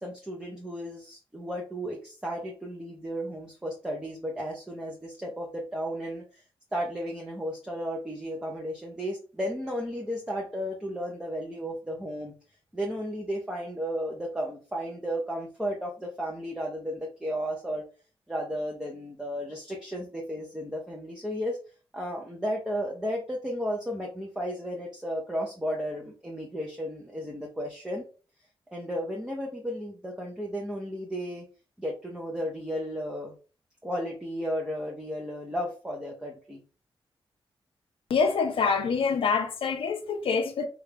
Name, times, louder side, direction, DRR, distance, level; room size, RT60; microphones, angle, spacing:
voice 1, 0.0-6.4 6.7-12.3 12.7-17.9 18.3-21.6 21.9-28.0 28.7-31.5 31.8-33.3 33.8-36.6, equal, 10° right, 0.7 m, -34 dB
voice 2, 38.1-40.7, left 5 dB, 80° left, 0.4 m, -26 dB
3.2 x 2.4 x 3.3 m
wide cardioid pair, 90°, 9 cm